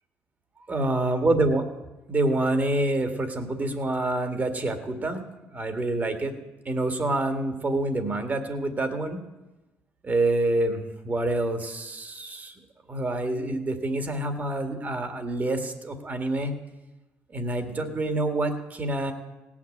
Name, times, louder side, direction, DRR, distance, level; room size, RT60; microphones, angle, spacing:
voice 1, 0.7-1.7 2.1-5.2 5.5-6.3 6.7-9.2 10.0-12.5 12.9-16.6 17.3-19.1, right 2 dB, 35° right, 7 dB, 1.9 m, -27 dB
17.5 x 6.0 x 8.6 m, 1.1 s
cardioid pair, 80°, 5 cm